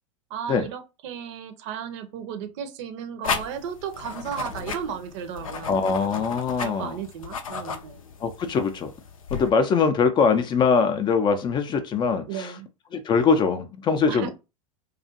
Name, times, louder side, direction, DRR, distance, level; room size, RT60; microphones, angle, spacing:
voice 1, 0.3-5.8 6.6-8.0 12.3-12.7 14.1-14.3, right 8 dB, 60° right, 0.6 m, -34 dB
sound 1, 3.2-9.5, left 5 dB, 85° left, 0.5 m, -35 dB
voice 2, 5.7-7.0 8.2-8.9 9.3-12.5 12.9-14.3, left 5 dB, 25° left, 0.4 m, -22 dB
2.4 x 2.3 x 2.7 m
hypercardioid pair, 95°, 17 cm